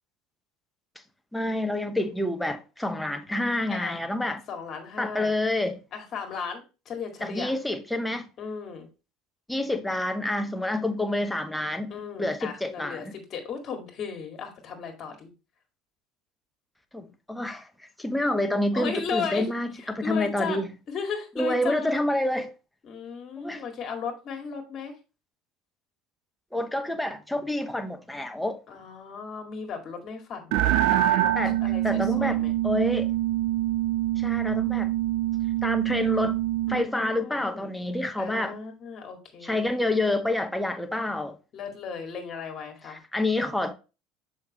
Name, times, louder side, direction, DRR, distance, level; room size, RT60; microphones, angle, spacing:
voice 1, 1.3-4.4 5.0-5.8 7.2-8.3 9.5-13.1 16.9-17.7 18.0-20.7 21.4-22.5 23.4-23.6 26.5-28.6 31.3-31.6 31.8-33.1 34.2-34.9 35.6-36.4 36.7-38.6 39.4-41.4 42.9-43.7, left 1 dB, 5° left, 0.9 m, -28 dB
voice 2, 4.5-5.3 5.9-7.5 8.4-8.9 11.9-15.3 18.7-20.6 20.9-21.9 22.8-24.9 28.7-31.3 31.6-32.5 36.7-37.7 38.2-39.8 41.5-43.0, left 6 dB, 45° left, 2.0 m, -36 dB
sound 1, 30.5-36.9, right 14 dB, 65° right, 0.5 m, -25 dB
6.4 x 5.3 x 3.0 m
hypercardioid pair, 75°, 0 cm